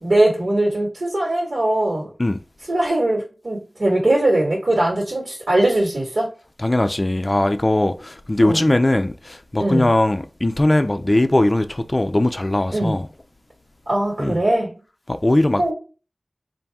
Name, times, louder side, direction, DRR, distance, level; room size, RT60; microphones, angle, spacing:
voice 1, 0.0-2.1 2.7-6.3 8.4-8.6 9.6-9.9 12.7-13.0 13.9-14.7 15.6-15.7, right 1 dB, 75° right, 1.6 m, -20 dB
voice 2, 6.6-13.1 14.2-14.4 15.1-15.7, left 1 dB, 35° left, 0.4 m, -19 dB
4.1 x 2.6 x 3.5 m
wide cardioid pair, 60°, 0 cm